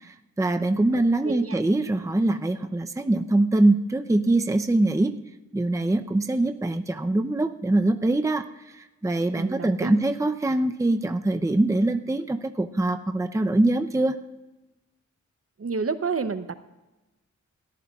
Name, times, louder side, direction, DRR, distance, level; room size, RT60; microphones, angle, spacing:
voice 1, 0.0-5.2 5.5-8.4 8.7-14.2, right 2 dB, 10° right, 7 dB, 0.6 m, -23 dB
voice 2, 0.9-1.6 9.4-10.0 15.6-16.6, right 5 dB, 50° right, 11 dB, 0.8 m, -30 dB
21.5 x 14.5 x 2.4 m, 1.1 s
wide cardioid pair, 70°, 30 cm